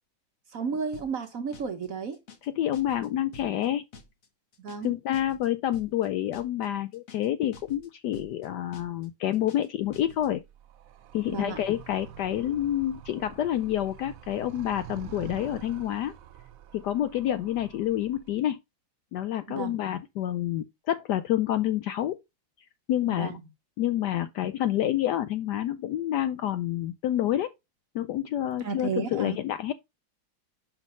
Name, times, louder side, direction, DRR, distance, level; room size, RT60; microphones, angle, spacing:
voice 1, 0.5-2.2 4.6-4.9 11.3-11.6 19.5-19.8 23.1-23.4 28.6-29.4, right 5 dB, 55° right, 1.1 m, -33 dB
sound 1, 0.9-1.3 1.5-1.9 2.1-2.5 2.7-3.1 3.3-3.7 3.9-4.3 4.5-4.9 5.1-5.5 5.7-6.1 6.3-6.7 6.9-7.3 7.5-7.9 8.1-8.5 8.7-9.1 9.3-9.7 9.9-10.3, left 3 dB, 50° left, 1.3 m, -49 dB
voice 2, 2.4-3.8 4.8-10.4 11.1-16.1 16.7-18.6 19.1-22.2 22.9-23.3 23.8-27.5 27.9-29.7, left 12 dB, 75° left, 1.0 m, -28 dB
Animal, 9.8-18.4, right 10 dB, 80° right, 0.7 m, -47 dB
5.8 x 4.7 x 5.3 m
omnidirectional pair, 2.2 m